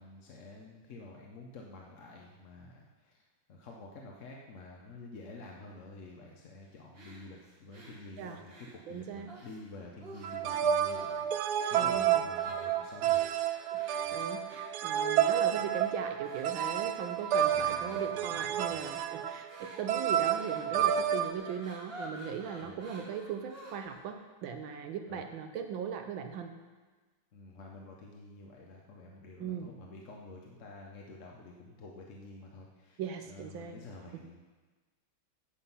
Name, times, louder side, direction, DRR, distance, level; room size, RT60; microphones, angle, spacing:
voice 1, 0.0-3.2 3.5-13.5 14.0-14.2 17.5-18.8 20.7-21.0 22.6-22.8 25.1-25.3 27.3-33.0 33.3-34.4, left 2 dB, 50° left, -1 dB, 0.9 m, -49 dB
sound 1, 6.9-9.6 10.0-10.5 10.8-11.2 11.6-11.9 12.3-24.0, right 1 dB, 30° right, 1.7 m, -50 dB
voice 2, 8.9-9.3 11.7-12.2 13.7-26.5 29.4-29.7 33.0-33.8 34.1-34.2, right 7 dB, 70° right, 6 dB, 1.4 m, -39 dB
sound 2, 10.2-21.3, right 9 dB, 85° right, 0.8 m, -30 dB
11.5 x 8.0 x 5.5 m, 1.3 s
omnidirectional pair, 2.4 m